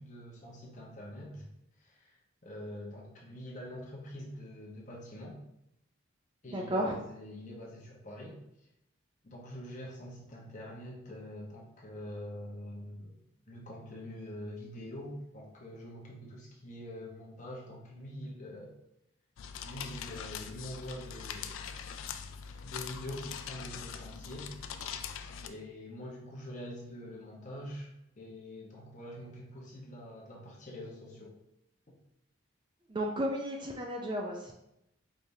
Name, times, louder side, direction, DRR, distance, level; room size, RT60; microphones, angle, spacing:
voice 1, 0.0-1.5 1.8-5.4 6.4-8.4 9.2-13.1 13.5-18.7 19.6-21.6 22.6-24.5 25.4-27.9 28.2-31.3, left 1 dB, 35° left, -3 dB, 1.0 m, -45 dB
voice 2, 6.5-7.0 32.9-34.5, equal, 20° right, 1 dB, 0.4 m, -33 dB
sound 1, 19.4-25.5, left 7 dB, 70° left, 0.3 m, -42 dB
4.7 x 3.4 x 2.7 m, 0.82 s
head